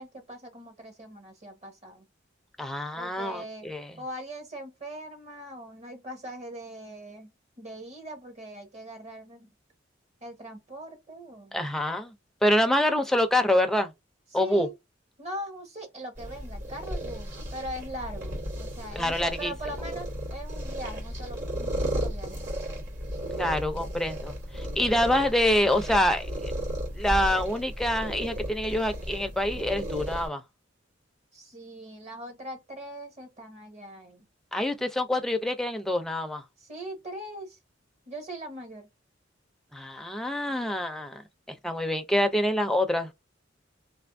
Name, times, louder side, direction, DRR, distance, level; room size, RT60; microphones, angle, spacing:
voice 1, 0.0-2.0 2.9-3.7 4.0-7.3 7.6-9.5 10.2-11.6 14.4-14.7 15.2-22.4 31.3-34.3 36.6-37.6 38.1-38.9, right 1 dB, 35° right, 1.1 m, -41 dB
voice 2, 2.6-3.9 11.5-12.1 12.4-13.9 14.3-14.7 18.9-19.5 23.4-26.5 26.9-30.4 34.5-36.4 39.7-41.2 41.6-43.1, left 1 dB, ahead, 0.5 m, -26 dB
sound 1, 16.1-30.3, equal, 65° right, 2.2 m, -34 dB
3.4 x 2.6 x 2.6 m
head